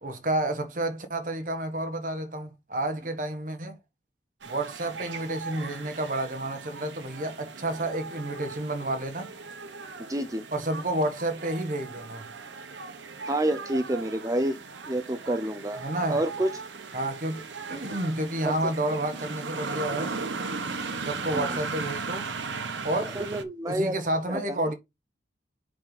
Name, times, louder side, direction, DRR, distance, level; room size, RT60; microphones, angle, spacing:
voice 1, 0.0-3.8 4.5-9.3 10.5-12.3 15.8-16.2 16.9-20.1 21.0-22.2 22.8-23.1 23.7-24.7, right 1 dB, 45° right, 1.2 m, -30 dB
sound 1, 4.4-23.4, right 4 dB, 85° right, 1.1 m, -37 dB
voice 2, 10.1-10.5 13.2-14.6 14.8-15.8 16.1-16.6 18.4-18.7 21.3-21.6 23.1-23.9 24.3-24.6, right 1 dB, 20° right, 0.5 m, -28 dB
7.6 x 5.2 x 4.0 m
head